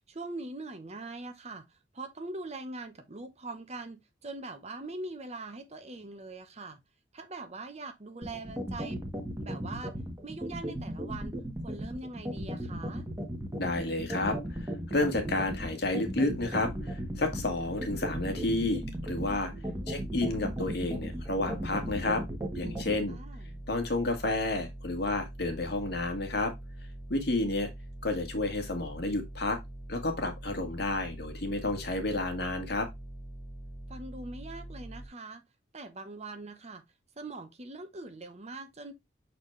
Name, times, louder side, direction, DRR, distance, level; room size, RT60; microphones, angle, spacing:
voice 1, 0.1-6.8 7.1-9.0 9.4-9.9 10.2-11.3 11.6-13.1 19.7-20.1 23.1-23.6 33.9-35.4 35.7-36.8 37.2-38.9, right 2 dB, 35° right, 0.9 m, -42 dB
sound 1, 8.2-22.9, right 1 dB, 15° right, 1.5 m, -35 dB
voice 2, 13.6-19.5 19.9-22.2 22.5-23.2 23.7-26.5 27.1-27.7 28.0-29.6 29.9-32.9, left 2 dB, 60° left, 1.9 m, -31 dB
sound 2, 16.6-35.1, right 1 dB, 20° left, 1.8 m, -44 dB
7.2 x 4.3 x 3.2 m
head